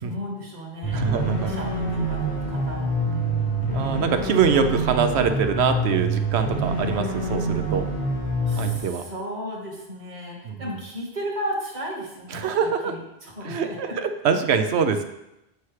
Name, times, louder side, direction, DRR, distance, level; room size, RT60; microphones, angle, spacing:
voice 1, 0.0-1.1 1.5-3.8 8.4-14.0, equal, 45° right, -2 dB, 1.6 m, -35 dB
sound 1, 0.8-8.8, right 1 dB, 80° left, 3.1 m, -26 dB
voice 2, 0.9-1.5 3.7-7.8 8.6-9.0 10.4-10.8 12.3-12.9 13.4-15.0, right 6 dB, 80° right, 7 dB, 0.9 m, -24 dB
8.1 x 5.6 x 3.2 m, 0.88 s
omnidirectional pair, 1.1 m